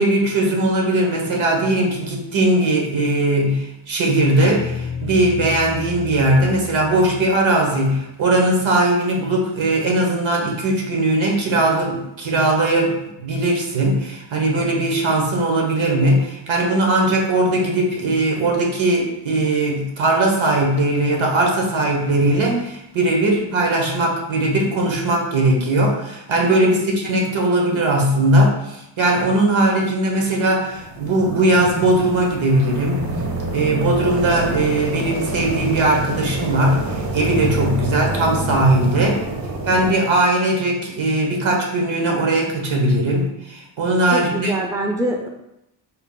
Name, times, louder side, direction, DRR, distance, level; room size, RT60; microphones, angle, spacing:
voice 1, 0.0-33.0 33.5-39.2 39.6-44.5, right 1 dB, 75° right, 0 dB, 1.0 m, -19 dB
Guitar, 4.4-7.6, left 5 dB, 35° left, 0.6 m, -32 dB
voice 2, 26.6-26.9 44.1-45.3, right 1 dB, 10° right, 2 dB, 0.4 m, -25 dB
sound 1, 30.7-39.9, right 2 dB, 50° right, 0.7 m, -27 dB
4.2 x 2.0 x 3.7 m, 0.86 s
wide cardioid pair, 80°, 47 cm